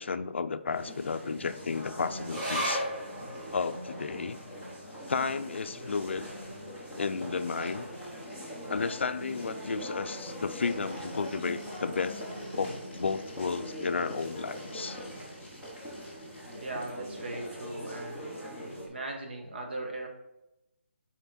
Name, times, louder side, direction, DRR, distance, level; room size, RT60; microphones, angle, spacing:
voice 1, 0.0-2.8 3.5-4.4 5.1-6.3 7.0-7.9 8.7-12.2 12.6-15.0, left 5 dB, 70° left, 10 dB, 0.4 m, -33 dB
sound 1, 0.7-18.9, equal, 10° right, 0.9 m, -41 dB
sound 2, 2.2-9.0 9.3-9.4 9.8-10.4 11.0-11.1, equal, 25° right, 1.4 m, -40 dB
sound 3, 10.2-16.8, left 1 dB, 10° left, 1.8 m, -54 dB
voice 2, 16.6-18.4 18.8-20.1, right 2 dB, 55° right, 2 dB, 1.2 m, -39 dB
5.7 x 4.4 x 4.1 m, 0.91 s
hypercardioid pair, 175°, 7 cm